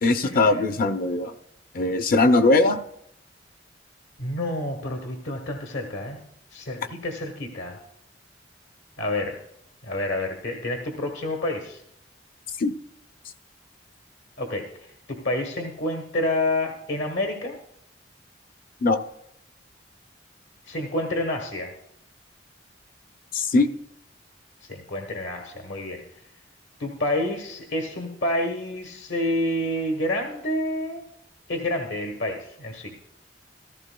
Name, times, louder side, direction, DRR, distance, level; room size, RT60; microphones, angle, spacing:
voice 1, 0.0-1.3 1.7-2.8 12.6-12.7 18.8-19.0 23.3-23.7, left 2 dB, 55° left, 8 dB, 0.6 m, -20 dB
voice 2, 4.2-6.2 6.5-7.8 9.0-9.4 9.8-11.8 14.4-17.6 20.6-21.7 24.7-26.0 26.8-31.0 31.5-32.9, left 1 dB, 80° left, 3 dB, 1.2 m, -28 dB
15.0 x 14.0 x 2.2 m, 0.76 s
head